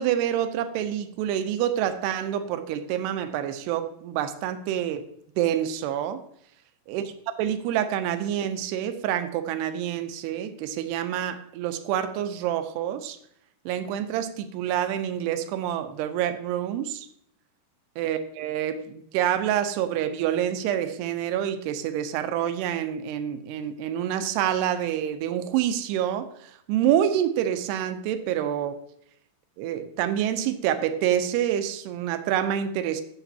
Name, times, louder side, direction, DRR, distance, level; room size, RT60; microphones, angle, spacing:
voice 1, 0.0-5.1 5.4-6.2 6.9-13.2 13.7-17.1 18.0-28.8 29.6-33.0, right 10 dB, 85° right, 10 dB, 2.7 m, -27 dB
13.0 x 6.8 x 2.8 m, 0.70 s
omnidirectional pair, 4.7 m